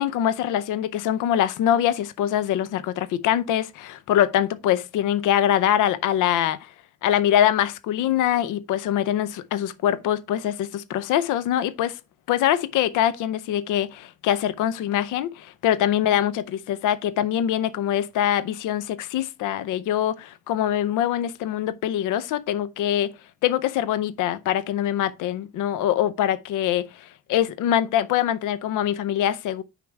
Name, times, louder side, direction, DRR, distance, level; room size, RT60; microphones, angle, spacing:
voice 1, 0.0-6.7 7.0-12.0 12.3-23.1 23.4-29.6, left 11 dB, 90° left, 0.7 m, -23 dB
6.3 x 5.1 x 4.6 m
cardioid pair, 90°, 30 cm